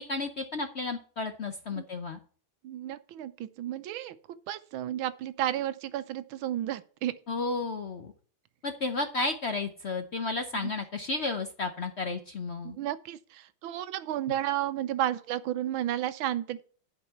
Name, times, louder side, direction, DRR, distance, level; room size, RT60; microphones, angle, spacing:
voice 1, 0.0-2.2 7.3-8.1 8.6-12.8, left 3 dB, 60° left, 0.7 m, -32 dB
voice 2, 2.6-4.2 4.5-7.2 10.5-10.7 12.6-16.6, right 12 dB, 85° right, 1.5 m, -32 dB
11.5 x 5.3 x 5.8 m
omnidirectional pair, 2.2 m